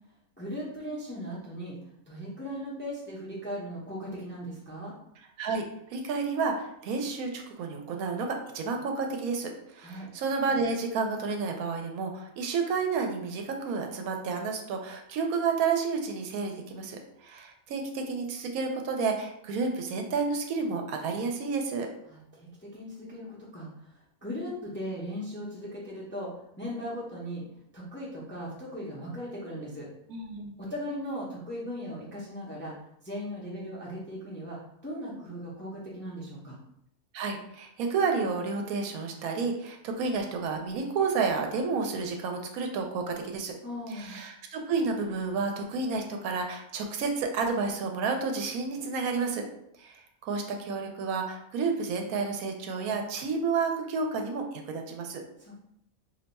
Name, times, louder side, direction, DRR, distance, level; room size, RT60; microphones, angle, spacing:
voice 1, 0.4-1.8 2.1-4.9 9.8-10.1 22.1-26.3 26.6-27.4 27.7-29.9 30.6-32.7 33.0-36.6 43.6-44.2 55.4-55.6, equal, 15° left, -5 dB, 0.4 m, -38 dB
voice 2, 5.9-21.9 30.1-30.5 37.1-43.5 43.9-49.4 49.8-55.2, right 4 dB, 90° right, 3 dB, 1.0 m, -30 dB
2.6 x 2.2 x 4.0 m, 0.75 s
omnidirectional pair, 1.5 m